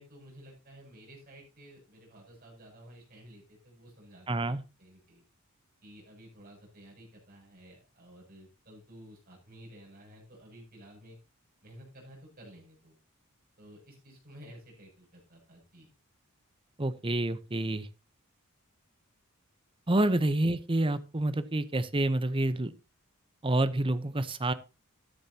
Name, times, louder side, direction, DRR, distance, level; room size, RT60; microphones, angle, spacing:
voice 1, 0.0-5.2 5.8-11.2 11.6-13.0 13.6-15.9 20.3-20.4, equal, 40° right, -1 dB, 7.4 m, -53 dB
voice 2, 4.3-4.6 16.8-17.9 19.9-22.7 23.4-24.5, right 1 dB, 25° right, 13 dB, 0.8 m, -28 dB
13.5 x 10.5 x 2.9 m, 0.30 s
head